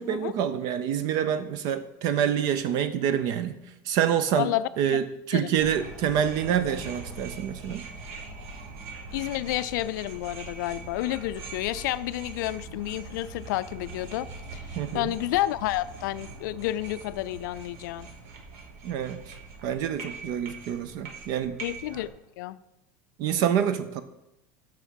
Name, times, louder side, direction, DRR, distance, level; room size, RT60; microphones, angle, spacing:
voice 1, 0.0-3.6 3.8-4.5 4.8-7.9 14.8-15.2 18.8-19.3 19.6-21.6 23.2-24.0, right 9 dB, 40° right, 12 dB, 0.4 m, -27 dB
voice 2, 4.4-5.0 5.3-5.5 9.1-14.3 14.5-14.7 14.9-18.1 21.6-22.6, left 15 dB, 75° left, 15 dB, 0.4 m, -30 dB
sound 1, 5.6-22.1, right 3 dB, 55° right, 1.3 m, -42 dB
6.1 x 5.7 x 6.3 m, 0.91 s
supercardioid pair, 175°, 10 cm